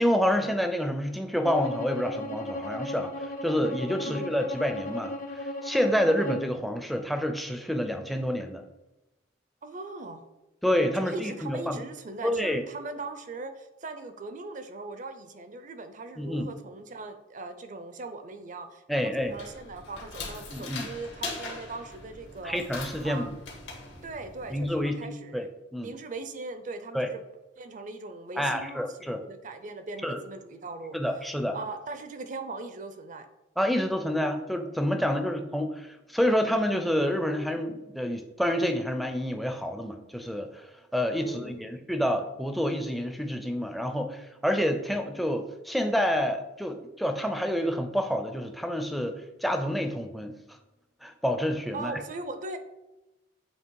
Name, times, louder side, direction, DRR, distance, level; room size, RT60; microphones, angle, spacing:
voice 1, 0.0-5.2 5.4-8.6 10.6-11.8 12.2-12.6 16.2-16.5 18.9-19.3 20.5-20.9 22.4-23.3 24.5-25.5 25.7-25.9 26.9-27.1 28.4-29.2 30.0-30.2 30.9-31.6 33.6-50.4 51.0-51.9, equal, ahead, 6 dB, 0.5 m, -28 dB
Bowed string instrument, 1.4-6.5, left 1 dB, 50° left, 0.8 m, -36 dB
voice 2, 9.6-10.2 10.9-22.6 23.0-23.3 24.0-25.5 25.8-27.2 27.6-31.0 31.5-33.3 35.0-35.2 41.2-41.8 51.7-52.6, right 3 dB, 45° right, 9 dB, 0.5 m, -40 dB
sound 1, 19.2-24.8, left 3 dB, 75° left, 1.7 m, -41 dB
7.4 x 2.9 x 4.6 m, 0.99 s
head